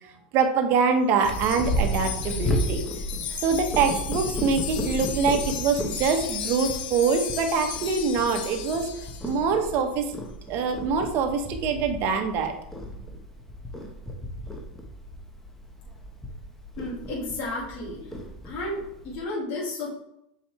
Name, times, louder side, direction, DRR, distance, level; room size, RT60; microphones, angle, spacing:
voice 1, 0.0-2.8 3.4-8.9 9.2-10.1 10.5-12.5, right 5 dB, 50° right, 5 dB, 1.2 m, -24 dB
Wind chime, 1.2-9.4, left 9 dB, 70° left, 0.8 m, -35 dB
Purr, 1.2-19.2, equal, 5° left, 1.2 m, -34 dB
voice 2, 16.8-18.1 18.4-19.9, left 2 dB, 50° left, -6 dB, 2.5 m, -32 dB
6.9 x 4.8 x 3.2 m, 0.79 s
hypercardioid pair, 110°, 5 cm